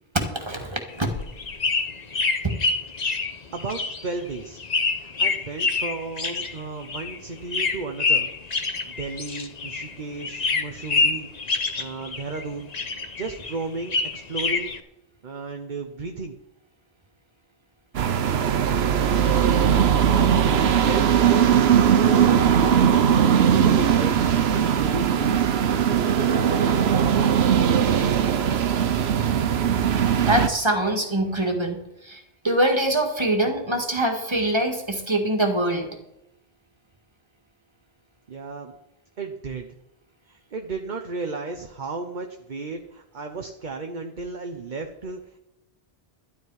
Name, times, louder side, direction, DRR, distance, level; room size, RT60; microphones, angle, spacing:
voice 1, 0.1-1.1 2.4-2.6 20.0-20.4 30.3-35.9, right 1 dB, 25° right, 2 dB, 2.0 m, -24 dB
sound 1, 0.9-9.9 10.2-12.4 12.7-14.8, left 4 dB, 40° left, 1.0 m, -27 dB
voice 2, 3.5-4.6 5.0-8.3 8.9-11.3 11.7-12.8 13.2-14.8 15.2-16.4 20.1-25.5 38.3-38.8 39.2-39.8 40.3-45.2, right 4 dB, 50° right, 4 dB, 1.1 m, -34 dB
sound 2, 17.9-30.5, right 8 dB, 75° right, 1.0 m, -19 dB
12.5 x 11.5 x 4.8 m, 0.85 s
omnidirectional pair, 1.1 m